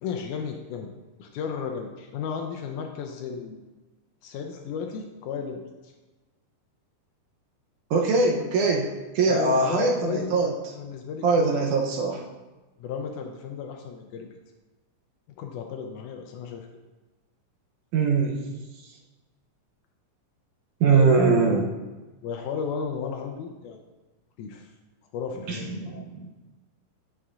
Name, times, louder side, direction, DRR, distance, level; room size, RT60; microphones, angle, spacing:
voice 1, 0.0-0.9 1.2-3.7 4.2-5.9 9.3-10.3 10.7-11.6 12.8-14.3 15.4-16.7 20.9-21.1 22.2-23.8 24.4-24.7 25.1-25.9, left 6 dB, 80° left, 3 dB, 1.9 m, -34 dB
voice 2, 7.9-10.5 11.2-12.2 17.9-18.4 20.8-21.7 25.5-26.3, right 4 dB, 75° right, 0 dB, 2.0 m, -22 dB
8.3 x 7.4 x 2.4 m, 1.2 s
omnidirectional pair, 3.9 m